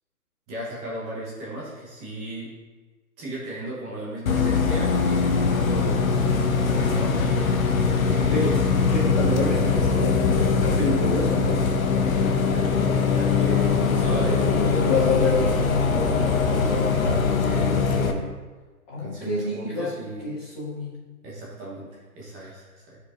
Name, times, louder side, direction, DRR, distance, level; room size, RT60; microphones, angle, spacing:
voice 1, 0.5-2.5 3.2-6.0 6.6-8.6 12.1-12.8 13.1-15.5 16.2-18.3 19.0-20.3 21.2-23.0, right 1 dB, 15° right, -6 dB, 1.1 m, -35 dB
Bus, 4.3-18.1, left 5 dB, 65° left, 0.9 m, -22 dB
voice 2, 8.3-8.6 8.9-11.6 14.8-16.4 18.9-21.1 22.4-22.5, left 2 dB, 25° left, -11 dB, 1.7 m, -27 dB
11.5 x 4.8 x 2.6 m, 1.3 s
hypercardioid pair, 145°, 45 cm